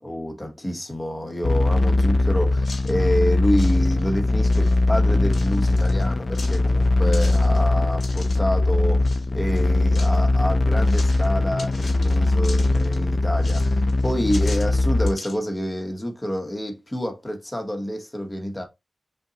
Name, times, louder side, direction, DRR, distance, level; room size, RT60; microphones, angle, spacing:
voice 1, 0.0-18.6, equal, 15° left, 1.0 m, -28 dB
sound 1, 1.4-15.1, left 2 dB, 40° left, 0.5 m, -20 dB
sound 2, 2.6-3.0 3.4-4.2 4.4-4.8 5.3-6.1 6.3-8.4 9.1-9.3 9.6-10.2 10.9-11.3 11.6-13.0 13.4-15.4, left 3 dB, 85° left, 2.0 m, -41 dB
5.4 x 2.3 x 3.9 m
wide cardioid pair, 110°, 0 cm